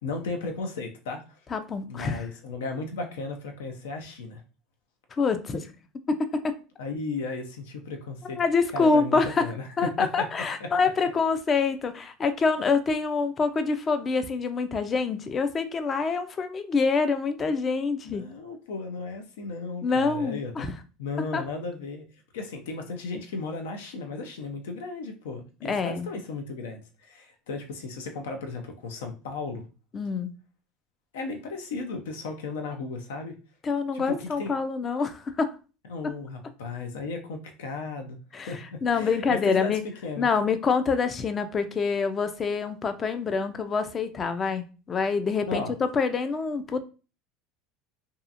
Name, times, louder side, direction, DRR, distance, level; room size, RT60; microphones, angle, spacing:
voice 1, 0.0-1.4 1.8-4.4 6.8-8.4 8.7-10.1 10.6-10.9 18.0-20.7 21.0-22.1 22.3-29.6 31.1-33.4 33.9-34.5 35.9-38.2 38.5-40.3 45.5-45.8, left 3 dB, 85° left, 5 dB, 0.5 m, -35 dB
voice 2, 1.5-2.3 5.1-5.7 6.1-6.6 8.3-9.5 9.8-18.2 19.8-20.7 21.3-21.4 25.6-26.1 29.9-30.3 33.6-35.5 36.0-36.1 38.3-39.8 40.2-46.8, left 4 dB, 30° left, 10 dB, 0.4 m, -26 dB
2.7 x 2.4 x 2.4 m, 0.33 s
supercardioid pair, 100°, 0 cm